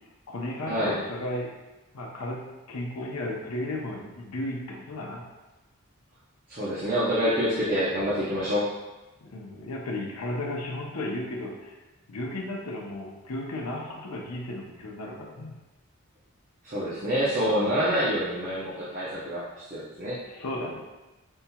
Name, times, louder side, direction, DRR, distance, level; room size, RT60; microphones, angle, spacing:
voice 1, 0.3-1.5 1.9-5.3 9.2-11.8 12.1-15.5 17.4-17.8 20.3-20.8, left 1 dB, 80° left, 0 dB, 0.7 m, -34 dB
voice 2, 6.5-8.7 16.6-20.2, equal, 35° right, -10 dB, 0.7 m, -27 dB
5.4 x 2.8 x 2.3 m, 1.1 s
head